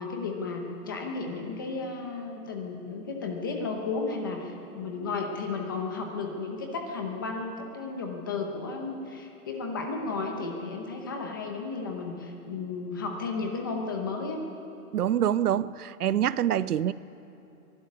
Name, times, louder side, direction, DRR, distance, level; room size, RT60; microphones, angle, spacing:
voice 1, 0.0-14.4, left 4 dB, 15° left, 2 dB, 0.8 m, -33 dB
voice 2, 14.9-16.9, right 10 dB, 70° right, 17 dB, 0.7 m, -25 dB
23.0 x 12.0 x 9.7 m, 2.8 s
hypercardioid pair, 175°, 47 cm